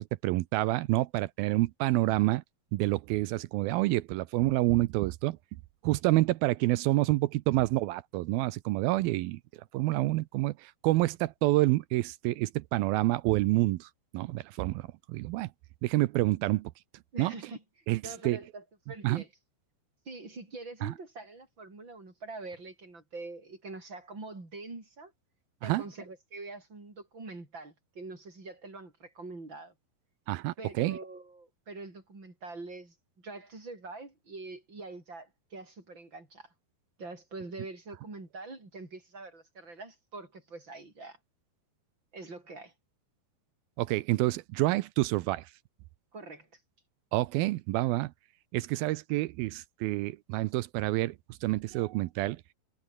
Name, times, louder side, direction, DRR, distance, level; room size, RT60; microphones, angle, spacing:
voice 1, 0.0-2.4 2.7-5.4 5.8-9.4 9.7-15.5 15.8-16.7 17.2-17.3 17.9-18.4 19.0-19.2 20.8-20.9 25.6-25.8 30.3-31.0 43.8-45.5 47.1-48.1 48.5-51.2 51.4-52.4, right 18 dB, 80° right, 2.3 m, -28 dB
voice 2, 17.1-17.6 18.0-19.3 20.1-25.1 25.6-29.7 30.6-36.5 37.0-41.2 42.1-42.7 46.1-46.6, right 3 dB, 25° right, 6.9 m, -44 dB
omnidirectional pair, 4.8 m